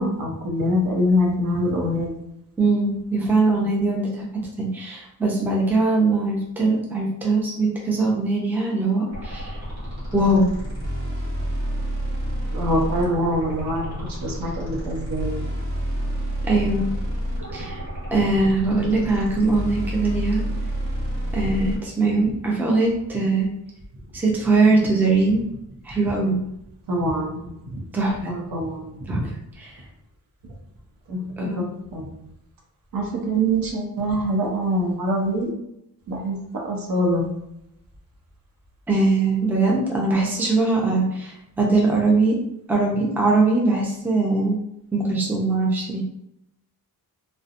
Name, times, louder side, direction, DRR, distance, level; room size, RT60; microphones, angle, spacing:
voice 1, 0.0-2.1 12.5-15.3 26.9-29.1 31.1-32.1 32.9-35.5 36.1-36.4 36.6-37.3, equal, 65° right, -1 dB, 0.7 m, -24 dB
voice 2, 2.6-4.2 4.6-9.5 10.1-10.5 16.4-16.9 17.5-17.8 18.1-20.4 21.3-23.5 24.1-25.4 25.8-26.4 27.9-28.3 29.1-29.2 29.6-29.7 31.4-31.7 38.9-42.4 42.7-44.6 44.9-46.0, right 3 dB, 5° right, -3 dB, 0.5 m, -21 dB
sound 1, 9.1-21.8, equal, 45° right, 1.2 m, -29 dB
2.7 x 2.1 x 2.5 m, 0.82 s
wide cardioid pair, 135°, 37 cm